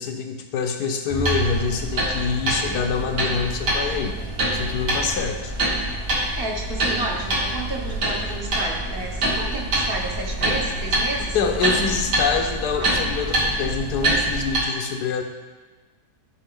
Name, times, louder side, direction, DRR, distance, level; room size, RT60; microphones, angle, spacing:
voice 1, 0.0-4.2 4.5-5.5 11.3-15.2, left 6 dB, 80° left, 4 dB, 1.4 m, -26 dB
sound 1, 1.1-14.6, right 1 dB, 90° right, 2.3 m, -25 dB
voice 2, 6.4-11.4, right 2 dB, 40° right, 0 dB, 1.1 m, -31 dB
12.5 x 4.4 x 3.9 m, 1.3 s
omnidirectional pair, 1.7 m